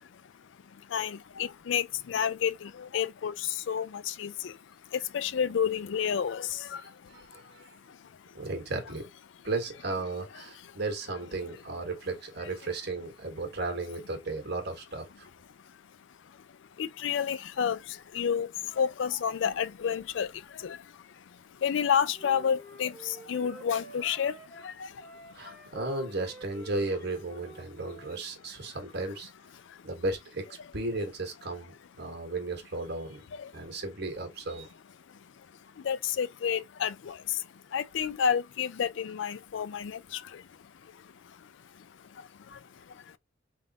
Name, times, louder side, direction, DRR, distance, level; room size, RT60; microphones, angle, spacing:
voice 1, 0.6-8.3 10.6-10.8 15.7-15.8 16.2-25.7 29.6-29.9 33.3-33.7 35.1-35.5 35.8-43.2, left 7 dB, 70° left, 0.4 m, -32 dB
voice 2, 6.8-7.8 8.3-9.0 9.4-15.3 25.3-29.3 29.8-33.2 33.5-34.7, right 2 dB, 60° right, 1.3 m, -35 dB
Wind instrument woodwind instrument, 21.8-28.1, right 2 dB, 5° left, 1.1 m, -49 dB
3.4 x 2.5 x 3.9 m
head